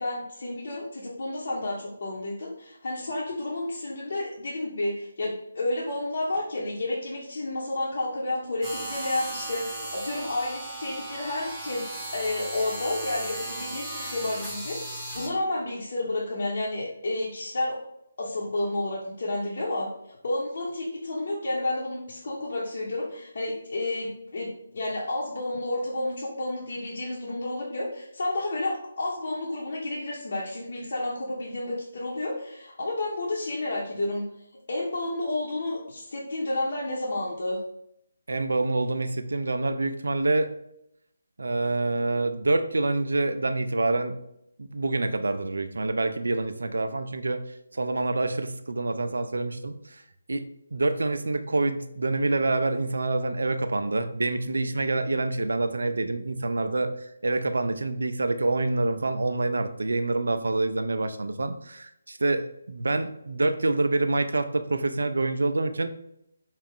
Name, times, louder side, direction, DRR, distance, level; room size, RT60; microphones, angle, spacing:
voice 1, 0.0-11.8 12.1-17.8 18.2-34.2 34.7-37.6, left 2 dB, 55° left, -6 dB, 0.9 m, -31 dB
sound 1, 8.6-15.3, right 1 dB, 10° right, 0.8 m, -36 dB
voice 2, 38.3-40.5 41.4-44.2 44.6-50.0 50.3-65.9, right 2 dB, 75° right, 9 dB, 0.4 m, -27 dB
4.5 x 2.4 x 3.6 m, 0.78 s
figure-of-eight pair, 155°, 0 cm